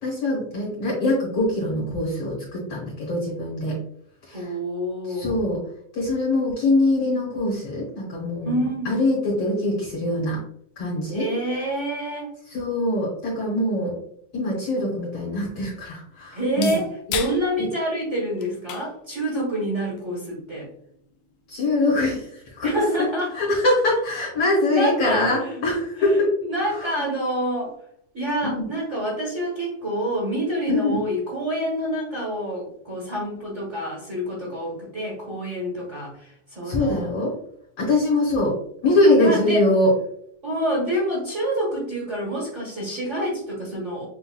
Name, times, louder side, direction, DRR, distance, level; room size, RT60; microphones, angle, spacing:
voice 1, 0.0-3.8 4.3-4.6 5.1-5.6 5.9-10.4 10.8-11.3 12.5-14.0 14.3-16.8 17.6-17.7 21.5-23.1 23.3-26.3 26.6-26.9 28.4-28.7 30.7-31.0 36.6-37.3 37.8-38.6 38.8-39.9, left 2 dB, 60° left, -5 dB, 2.0 m, -23 dB
voice 2, 4.3-5.4 8.4-9.0 11.1-12.3 16.3-20.7 22.6-23.4 24.7-25.6 26.0-27.8 28.1-37.1 39.2-39.7 40.4-44.1, equal, 80° right, -5 dB, 0.6 m, -27 dB
sound 1, 14.1-22.1, left 9 dB, 80° left, 1.5 m, -39 dB
7.6 x 2.6 x 2.2 m, 0.69 s
omnidirectional pair, 3.5 m